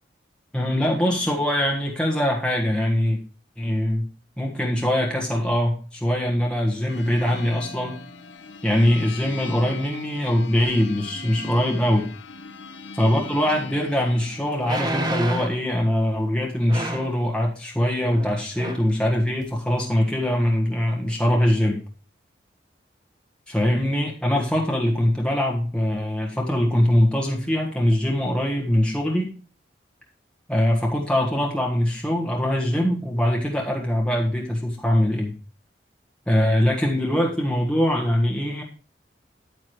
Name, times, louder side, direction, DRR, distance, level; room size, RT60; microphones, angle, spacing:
voice 1, 0.5-3.2 3.6-4.1 4.4-8.0 8.6-12.1 13.0-21.8 23.5-29.3 30.5-35.3 36.3-38.6, left 1 dB, 5° left, -1 dB, 1.5 m, -22 dB
sound 1, 6.9-14.8, left 4 dB, 80° left, 1.0 m, -40 dB
sound 2, 13.6-13.7 14.6-15.6 16.7-17.2 18.1-18.3 18.6-18.9 19.4-19.5, right 1 dB, 25° right, 1.3 m, -29 dB
9.6 x 9.1 x 3.1 m, 0.39 s
head